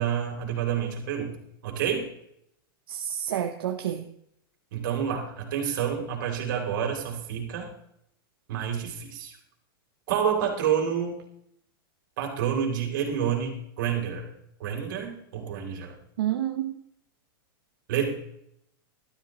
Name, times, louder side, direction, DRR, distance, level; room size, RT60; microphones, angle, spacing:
voice 1, 0.0-1.4 1.6-2.1 4.7-7.7 8.5-9.4 10.1-11.3 12.2-14.3 14.6-16.0 17.9-18.1, right 8 dB, 55° right, 1 dB, 3.7 m, -28 dB
voice 2, 2.9-4.0 16.2-16.7, right 11 dB, 75° right, 5 dB, 1.0 m, -29 dB
13.0 x 13.0 x 3.2 m, 0.74 s
supercardioid pair, 170°, 12 cm